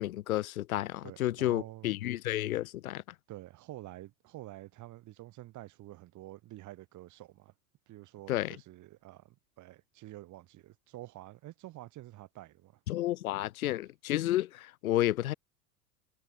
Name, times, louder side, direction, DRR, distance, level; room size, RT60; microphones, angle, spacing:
voice 1, 0.0-3.0 8.3-8.6 12.9-15.3, left 14 dB, 65° left, 1.0 m, -31 dB
voice 2, 1.0-1.9 3.3-7.5 7.9-12.8, right 16 dB, 40° right, 4.3 m, -48 dB
figure-of-eight pair, 85°, 46 cm